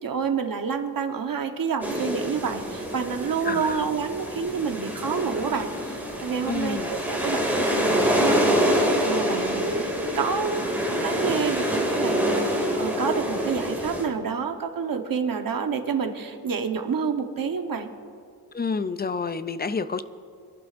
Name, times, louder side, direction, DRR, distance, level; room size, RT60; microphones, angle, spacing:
voice 1, 0.0-9.9 10.1-10.7 11.0-17.9, right 6 dB, 60° right, 5 dB, 1.1 m, -28 dB
sound 1, 1.8-14.0, equal, 5° right, 2.4 m, -26 dB
voice 2, 3.4-3.8 6.4-6.9 18.5-20.0, left 4 dB, 25° left, 12 dB, 0.4 m, -29 dB
24.5 x 11.5 x 2.6 m, 2.4 s
wide cardioid pair, 140°, 38 cm